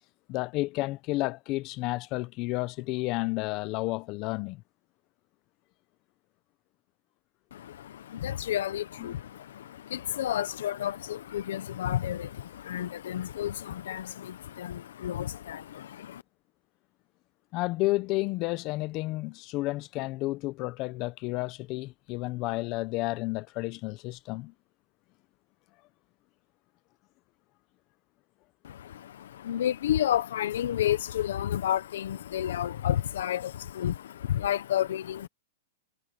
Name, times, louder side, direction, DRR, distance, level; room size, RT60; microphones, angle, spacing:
voice 1, 0.3-4.6 17.5-24.5, left 20 dB, 35° left, 1.0 m, -31 dB
voice 2, 7.5-16.2 28.6-35.3, left 11 dB, 75° left, 0.9 m, -31 dB
hypercardioid pair, 145°, 0 cm